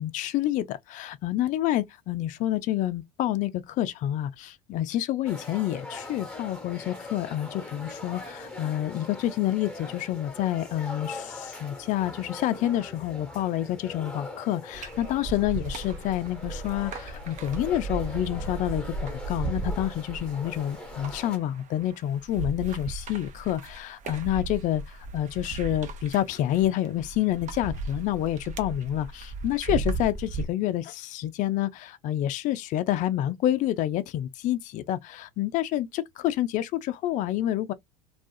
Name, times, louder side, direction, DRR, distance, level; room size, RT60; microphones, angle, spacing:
voice 1, 0.0-37.7, left 13 dB, 40° left, 0.4 m, -28 dB
sound 1, 5.3-21.4, left 2 dB, 5° left, 1.1 m, -42 dB
sound 2, 14.7-30.5, right 4 dB, 35° right, 0.7 m, -36 dB
2.3 x 2.3 x 2.6 m
hypercardioid pair, 80°, 20 cm